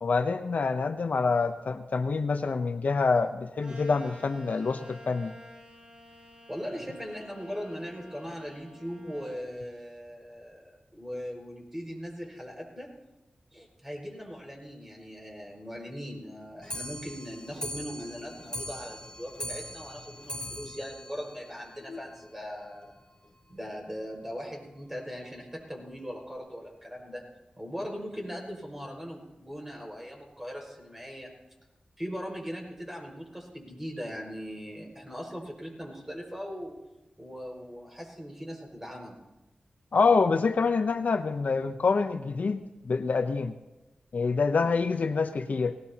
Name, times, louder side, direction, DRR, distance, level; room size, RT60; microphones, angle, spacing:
voice 1, 0.0-5.3 21.9-22.0 39.9-43.5 44.1-45.8, left 4 dB, 70° left, 8 dB, 0.7 m, -26 dB
sound 1, 3.6-9.4, left 1 dB, 40° right, 5.4 m, -50 dB
voice 2, 6.5-12.9 13.5-22.9 23.5-27.2 27.6-31.3 32.0-36.7 37.2-39.2, equal, 10° right, -1 dB, 5.6 m, -39 dB
Clock, 16.6-22.1 22.5-22.6 22.8-22.9 23.2-23.3 23.6-23.7 24.4-24.5 25.2-25.3 26.0-26.1, left 1 dB, 30° left, 2.7 m, -41 dB
19.5 x 17.5 x 2.9 m, 0.99 s
cardioid pair, 60°, 3 cm